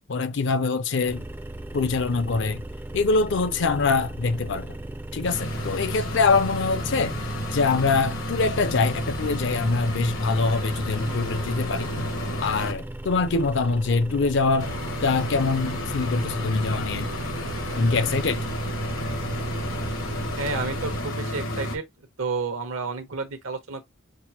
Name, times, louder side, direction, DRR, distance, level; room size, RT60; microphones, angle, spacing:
voice 1, 0.1-1.2 1.7-2.6 2.9-4.8 5.1-7.2 7.5-11.9 12.4-14.7 15.0-17.1 17.8-18.5, left 4 dB, 60° left, 0.5 m, -24 dB
sound 1, 1.1-21.0, right 1 dB, 10° right, 0.3 m, -38 dB
sound 2, 5.2-12.7 14.6-21.8, equal, 85° left, 1.3 m, -31 dB
voice 2, 20.4-21.8 22.2-23.9, right 4 dB, 85° right, 1.0 m, -30 dB
6.0 x 2.0 x 2.9 m
head